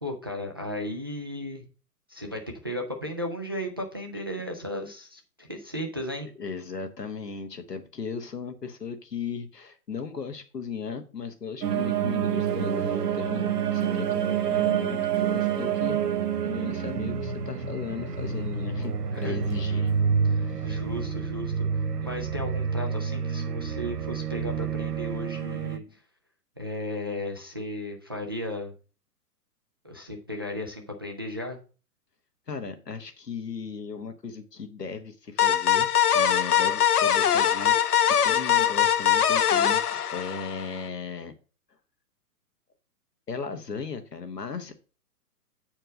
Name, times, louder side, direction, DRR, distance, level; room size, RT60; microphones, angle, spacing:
voice 1, 0.0-1.6 2.1-6.3 19.1-19.4 20.3-21.7 22.0-25.8 26.6-28.7 29.8-31.6, left 1 dB, 20° right, 1 dB, 0.3 m, -35 dB
voice 2, 6.4-16.0 16.4-19.9 20.4-20.7 32.5-35.9 36.1-37.7 38.0-41.3 43.3-44.7, left 5 dB, 90° left, 7 dB, 1.4 m, -37 dB
sound 1, 11.6-25.8, right 7 dB, 80° right, 1.1 m, -28 dB
sound 2, 35.4-40.8, left 9 dB, 75° left, 0.8 m, -22 dB
7.9 x 4.4 x 5.1 m, 0.35 s
figure-of-eight pair, 120°, 47 cm